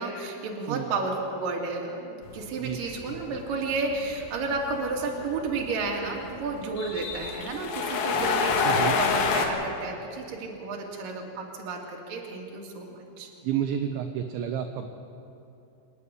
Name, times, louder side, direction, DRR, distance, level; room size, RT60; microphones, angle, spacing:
voice 1, 0.0-13.3, right 3 dB, 50° right, 0 dB, 3.4 m, -32 dB
sound 1, 2.2-9.5, left 5 dB, 80° left, 4.3 m, -28 dB
voice 2, 8.6-9.0 13.4-14.9, right 9 dB, 75° right, 5 dB, 2.9 m, -30 dB
27.0 x 9.7 x 9.9 m, 2.8 s
omnidirectional pair, 5.9 m